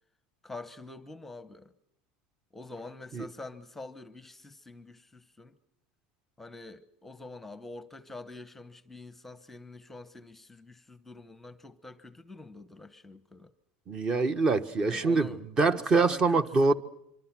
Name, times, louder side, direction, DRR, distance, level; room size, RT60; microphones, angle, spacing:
voice 1, 0.4-1.7 2.5-5.6 6.4-13.5 14.8-15.4 15.7-16.7, left 2 dB, 5° left, 1.0 m, -46 dB
voice 2, 13.9-16.7, right 3 dB, 25° right, 1.3 m, -25 dB
25.0 x 24.5 x 6.1 m
supercardioid pair, 150°, 3 cm